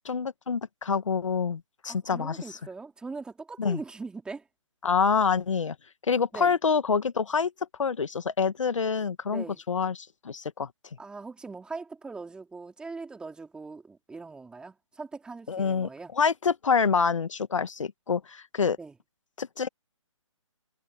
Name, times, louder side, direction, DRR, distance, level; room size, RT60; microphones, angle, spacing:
voice 1, 0.1-2.6 3.6-3.8 4.8-5.8 6.1-7.5 7.8-10.7 15.5-18.8 19.4-19.7, left 5 dB, 70° left, 1.8 m, -27 dB
voice 2, 1.9-4.4 6.3-6.5 9.3-9.6 11.0-16.1 18.8-18.9, right 4 dB, 5° right, 3.2 m, -41 dB
hypercardioid pair, 150°, 17 cm